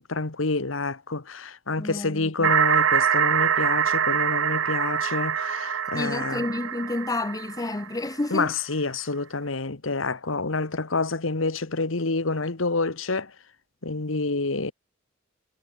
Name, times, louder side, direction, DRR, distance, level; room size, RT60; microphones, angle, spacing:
voice 1, 0.0-6.5 8.3-13.3 13.8-14.7, left 3 dB, 75° left, 1.5 m, -28 dB
voice 2, 1.8-2.5 5.9-8.5, left 2 dB, 20° left, 0.5 m, -30 dB
sound 1, 2.4-8.1, right 8 dB, 75° right, 0.8 m, -24 dB
head